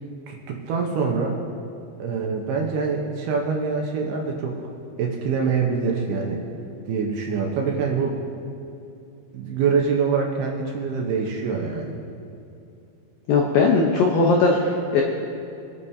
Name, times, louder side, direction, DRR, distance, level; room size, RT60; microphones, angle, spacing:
voice 1, 0.3-1.4 2.0-4.6 5.0-6.4 6.9-8.2 9.3-11.9, right 5 dB, 75° right, -1 dB, 2.5 m, -25 dB
voice 2, 13.3-15.0, left 3 dB, 85° left, 0 dB, 2.0 m, -19 dB
25.5 x 8.9 x 2.8 m, 2.7 s
omnidirectional pair, 5.3 m